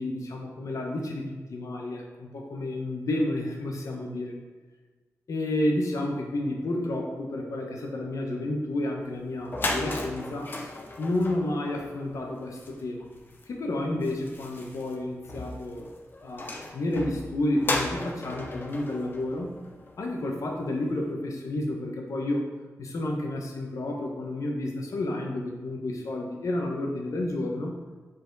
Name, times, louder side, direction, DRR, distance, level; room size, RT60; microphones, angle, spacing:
voice 1, 0.0-4.3 5.3-10.7 11.0-13.1 13.5-15.9 16.2-19.6 20.0-22.5 22.8-27.7, left 1 dB, 70° left, 1 dB, 1.1 m, -31 dB
sound 1, 9.1-9.2 9.4-20.2, left 2 dB, 35° left, 0.7 m, -36 dB
7.6 x 4.2 x 4.0 m, 1.3 s
wide cardioid pair, 145°, 6 cm